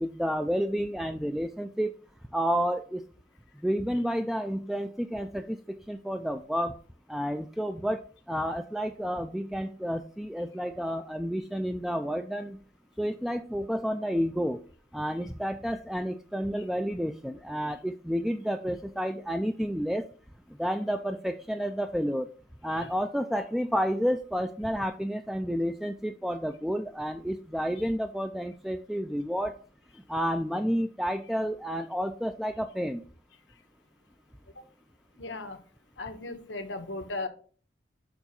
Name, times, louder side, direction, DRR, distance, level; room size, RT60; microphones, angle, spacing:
voice 1, 0.0-1.9 2.3-3.0 3.6-6.7 7.1-12.6 13.0-14.6 14.9-20.0 20.6-22.3 22.6-29.5 30.1-33.0, equal, ahead, 6 dB, 0.3 m, -30 dB
voice 2, 35.2-35.6 36.0-37.3, left 2 dB, 85° left, 7 dB, 1.2 m, -36 dB
6.9 x 5.6 x 4.3 m, 0.41 s
head